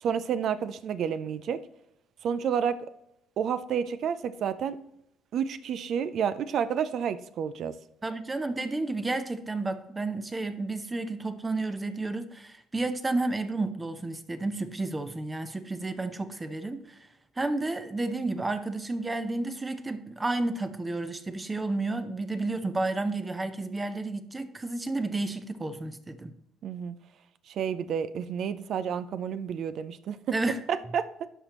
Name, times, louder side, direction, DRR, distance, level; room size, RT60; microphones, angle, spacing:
voice 1, 0.0-1.6 2.2-2.8 3.4-4.8 5.3-7.7 26.6-27.0 27.5-30.2 30.9-31.1, right 7 dB, 60° right, 14 dB, 0.4 m, -30 dB
voice 2, 8.0-17.1 17.4-26.3 30.3-30.6, right 2 dB, 20° right, 9 dB, 0.7 m, -31 dB
11.5 x 4.3 x 3.0 m, 0.78 s
supercardioid pair, 80°, 0 cm